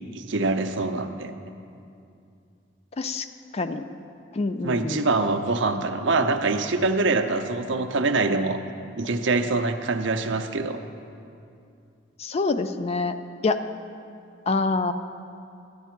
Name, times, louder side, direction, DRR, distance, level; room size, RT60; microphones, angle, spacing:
voice 1, 0.1-1.3 4.6-8.6 9.0-10.8, right 3 dB, 70° right, 7 dB, 0.6 m, -24 dB
voice 2, 3.0-3.3 3.5-3.8 4.3-5.0 12.2-13.2 13.4-13.6 14.5-14.9, left 3 dB, 35° left, 9 dB, 0.4 m, -25 dB
12.5 x 9.2 x 4.5 m, 2.5 s
head